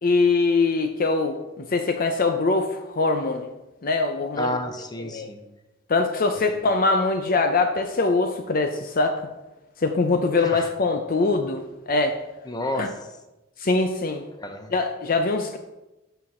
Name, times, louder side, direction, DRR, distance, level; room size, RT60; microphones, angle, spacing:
voice 1, 0.0-3.5 3.8-4.6 5.0-5.3 5.9-9.2 9.8-12.2 12.8-12.9 13.6-14.2 14.7-15.6, left 3 dB, 45° left, 6 dB, 0.6 m, -23 dB
voice 2, 4.3-5.4 6.4-6.6 10.4-10.7 12.5-12.9 14.4-14.7, left 1 dB, 20° left, 6 dB, 0.8 m, -31 dB
8.2 x 5.9 x 4.8 m, 1.0 s
head